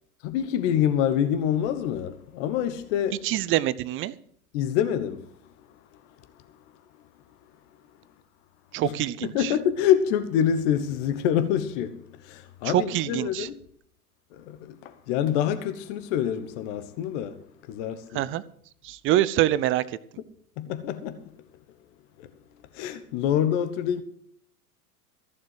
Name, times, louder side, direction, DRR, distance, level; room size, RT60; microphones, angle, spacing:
voice 1, 0.2-3.2 4.5-5.3 8.8-8.9 9.3-13.6 14.3-17.4 17.7-18.2 20.6-21.2 22.7-24.0, left 9 dB, 50° left, 1.2 m, -26 dB
voice 2, 3.2-4.1 8.7-9.5 12.6-13.5 18.1-18.4 18.8-19.8, right 13 dB, 25° right, 0.6 m, -25 dB
14.5 x 7.2 x 7.6 m
hypercardioid pair, 100°, 46 cm